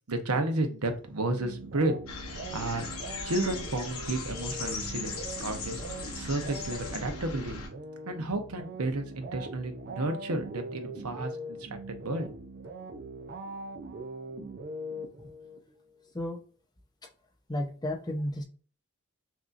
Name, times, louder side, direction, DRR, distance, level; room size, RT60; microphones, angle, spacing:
voice 1, 0.1-1.9 2.3-2.9 3.2-5.8 6.1-7.6 8.1-12.3, right 2 dB, 90° right, 6 dB, 0.9 m, -32 dB
sound 1, 1.3-15.6, right 2 dB, 45° right, 0.5 m, -42 dB
sound 2, 2.1-7.7, left 4 dB, 75° left, 1.1 m, -38 dB
voice 2, 17.5-18.4, left 1 dB, 20° left, 2 dB, 0.6 m, -32 dB
6.0 x 2.7 x 2.5 m, 0.39 s
head